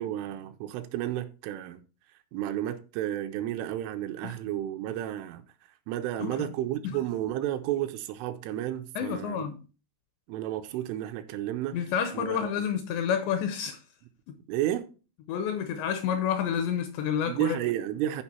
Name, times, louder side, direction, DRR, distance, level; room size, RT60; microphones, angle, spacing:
voice 1, 0.0-1.8 2.3-5.4 5.9-9.4 10.3-11.9 12.1-12.7 14.5-14.9 17.3-18.2, right 12 dB, 80° right, 3.1 m, -32 dB
voice 2, 6.2-6.5 6.8-7.0 9.0-9.6 11.7-13.8 14.3-14.4 15.3-17.6, left 8 dB, 80° left, 2.7 m, -29 dB
11.5 x 4.9 x 4.3 m
omnidirectional pair, 5.8 m